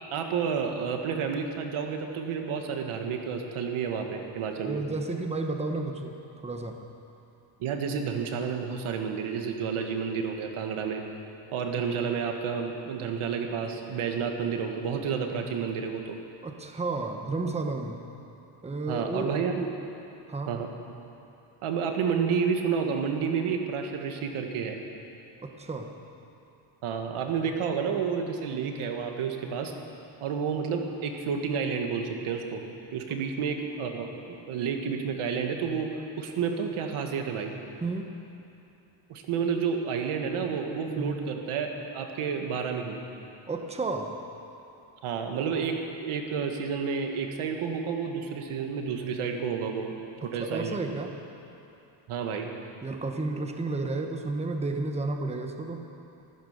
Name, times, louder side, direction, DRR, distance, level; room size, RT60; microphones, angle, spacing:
voice 1, 0.1-4.8 7.6-11.0 11.5-16.2 18.9-19.7 20.5-20.7 21.6-24.8 26.8-29.7 30.2-32.6 32.9-35.9 36.2-37.5 39.1-43.0 45.0-50.0 50.2-50.8 52.1-52.5, right 6 dB, 90° right, 4 dB, 1.7 m, -30 dB
voice 2, 4.6-6.9 16.4-18.0 18.6-19.4 20.3-20.6 25.4-25.9 33.1-33.2 37.8-38.1 40.9-41.2 43.5-44.2 50.2-51.1 52.8-55.9, right 3 dB, 15° right, 4 dB, 1.0 m, -32 dB
14.5 x 14.5 x 6.7 m, 2.8 s
cardioid pair, 140°, 49 cm